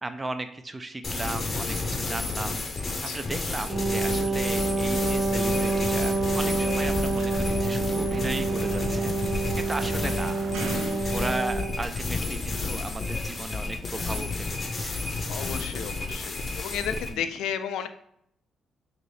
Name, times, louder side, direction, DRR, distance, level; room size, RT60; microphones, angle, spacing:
voice 1, 0.0-9.1 9.6-10.5 11.1-15.0 17.1-17.3, right 2 dB, 25° right, 9 dB, 0.4 m, -36 dB
sound 1, 1.0-17.1, left 3 dB, 40° left, 0.6 m, -31 dB
Wind instrument woodwind instrument, 3.7-11.8, right 3 dB, 50° right, 0.9 m, -28 dB
sound 2, 5.5-11.0, right 3 dB, 85° right, 0.4 m, -38 dB
voice 2, 15.3-17.9, left 8 dB, 85° left, 9 dB, 0.3 m, -33 dB
3.2 x 2.7 x 4.0 m, 0.69 s
cardioid pair, 75°, 0 cm